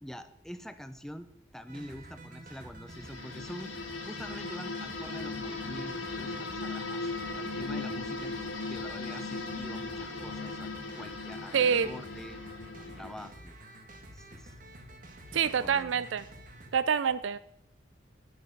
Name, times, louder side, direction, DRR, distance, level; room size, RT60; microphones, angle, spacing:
voice 1, 0.0-1.3 1.5-3.8 4.1-8.4 8.6-12.4 12.8-13.5 14.1-14.5 15.2-16.0, equal, ahead, 10 dB, 0.6 m, -45 dB
sound 1, 1.7-16.7, right 1 dB, 45° right, 1.5 m, -50 dB
sound 2, 2.9-13.3, left 3 dB, 85° left, 1.7 m, -38 dB
voice 2, 11.5-11.9 15.3-16.2 16.7-17.4, right 7 dB, 80° right, 15 dB, 0.4 m, -26 dB
10.5 x 8.2 x 5.1 m, 0.76 s
head